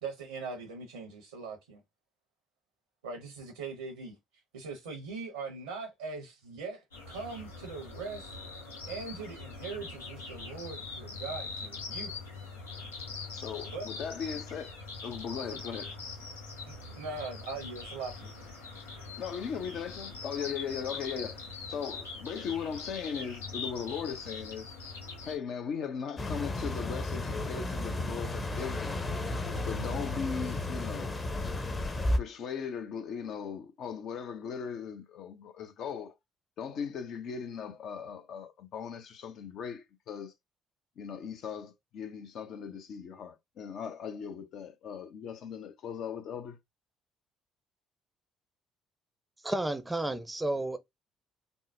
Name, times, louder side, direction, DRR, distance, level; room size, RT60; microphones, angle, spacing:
voice 1, 0.0-1.8 3.0-4.2 4.5-8.4 8.9-12.1 13.7-13.9 16.7-18.3, right 4 dB, 85° right, 0.7 m, -41 dB
sound 1, 6.9-25.4, left 4 dB, 90° left, 0.9 m, -42 dB
voice 2, 13.3-14.8 15.0-15.9 19.2-21.4 21.7-24.7 25.2-29.0 29.6-31.2 32.1-36.1 36.6-40.3 41.0-46.6, left 7 dB, 60° left, 0.6 m, -38 dB
sound 2, 26.2-32.2, left 2 dB, 30° left, 0.8 m, -33 dB
voice 3, 49.4-50.8, right 1 dB, 15° right, 0.5 m, -31 dB
3.5 x 2.0 x 2.6 m
hypercardioid pair, 50°, 0 cm